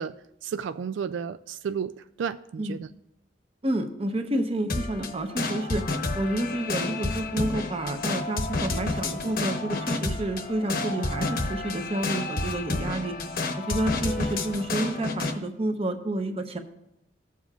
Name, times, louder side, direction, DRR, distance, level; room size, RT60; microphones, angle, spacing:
voice 1, 0.0-2.9, right 7 dB, 90° right, 11 dB, 0.3 m, -33 dB
voice 2, 3.6-13.2 13.6-16.6, right 1 dB, 35° right, 6 dB, 0.9 m, -29 dB
sound 1, 4.7-15.4, left 3 dB, 55° left, 0.9 m, -30 dB
16.0 x 7.2 x 2.4 m, 0.84 s
head